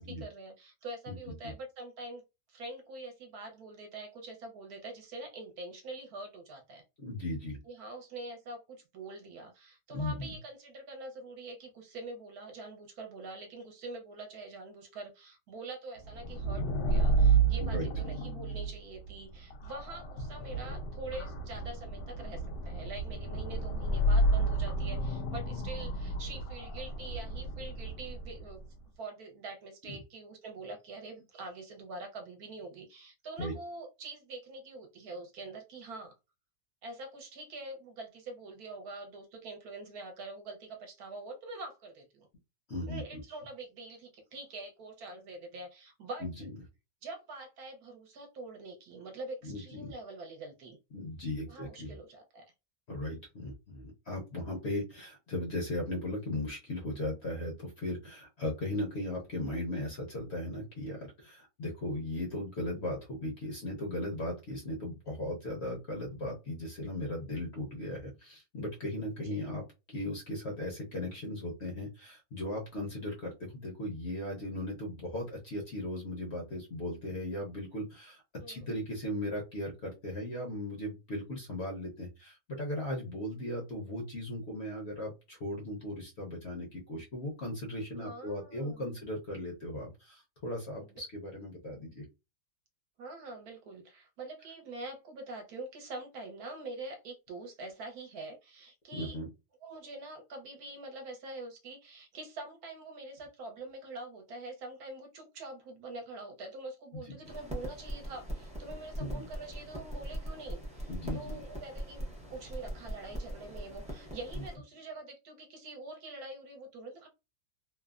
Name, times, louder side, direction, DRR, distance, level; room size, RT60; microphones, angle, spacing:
voice 1, 0.0-2.2 2.5-6.8 7.7-28.6 29.0-36.1 36.8-42.3 42.9-46.3 47.0-50.8 51.5-52.4 69.2-69.4 78.4-78.7 88.0-88.9 90.8-91.0 93.0-99.2 99.6-117.1, right 2 dB, 70° right, 1.1 m, -45 dB
voice 2, 1.1-1.5 7.0-7.6 9.9-10.4 17.6-17.9 29.9-30.0 33.4-33.5 42.7-43.2 46.2-46.3 49.4-49.9 50.9-52.0 52.9-69.6 69.9-78.2 78.5-92.0 98.9-99.3 106.9-107.1 109.0-109.3 110.9-111.5 114.3-114.4, left 1 dB, 55° left, 0.8 m, -37 dB
sound 1, 16.1-28.6, right 3 dB, 90° left, 1.2 m, -31 dB
sound 2, 107.2-114.6, equal, 10° right, 0.3 m, -41 dB
3.1 x 2.0 x 2.3 m
omnidirectional pair, 1.8 m